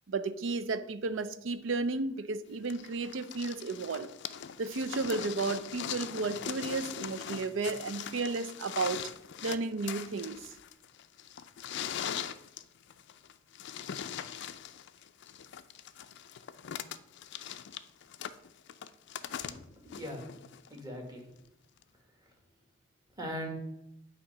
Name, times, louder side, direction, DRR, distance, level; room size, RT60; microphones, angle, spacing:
voice 1, 0.1-4.1 4.6-9.0 9.4-10.5, right 3 dB, 70° right, 0.5 m, -33 dB
sound 1, 2.7-20.8 21.8-21.9, left 9 dB, 60° left, 0.4 m, -41 dB
voice 2, 19.3-20.3 20.7-21.2 22.2-22.3 23.2-23.5, equal, 20° right, 1.5 m, -41 dB
8.6 x 2.9 x 5.4 m
head